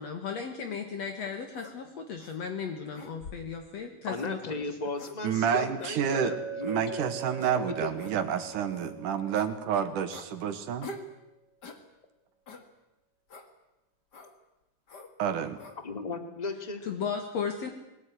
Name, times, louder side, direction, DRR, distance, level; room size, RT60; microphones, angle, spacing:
voice 1, 0.0-4.6 16.8-17.7, left 6 dB, 60° left, 5 dB, 2.6 m, -35 dB
sound 1, 1.5-1.7 2.2-2.4 2.9-3.5 4.1-4.3 4.9-5.2 5.8-6.0 6.6-6.8 7.4-7.6 8.0-8.1 8.7-8.9 9.3-9.5 10.1-10.3 10.8-11.1 11.6-11.8 12.5-12.7 13.3-13.5 14.1-14.3 14.9-15.1 15.6-15.8, left 2 dB, 35° left, 2.2 m, -45 dB
voice 2, 4.1-7.1 7.5-7.9 15.8-17.0, left 3 dB, 15° left, 7 dB, 1.9 m, -36 dB
voice 3, 5.2-6.3 6.6-10.9 15.2-15.6, right 8 dB, 80° right, 8 dB, 3.2 m, -29 dB
Chink clink, 6.0-10.2, right 5 dB, 85° left, 8.9 m, -41 dB
21.5 x 18.5 x 9.7 m, 0.97 s
omnidirectional pair, 3.7 m